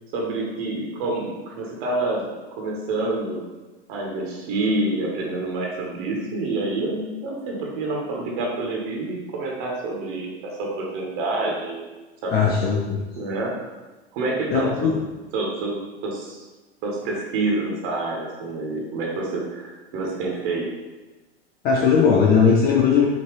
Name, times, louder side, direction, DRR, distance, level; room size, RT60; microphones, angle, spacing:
voice 1, 0.1-3.4 3.9-11.8 12.2-12.6 13.2-13.6 14.1-16.4 16.8-20.7, right 2 dB, 50° right, -2 dB, 1.0 m, -28 dB
voice 2, 12.3-13.0 14.5-14.9 21.6-23.1, left 6 dB, 30° left, -2 dB, 0.5 m, -18 dB
5.1 x 2.7 x 3.1 m, 1.2 s
hypercardioid pair, 100°, 32 cm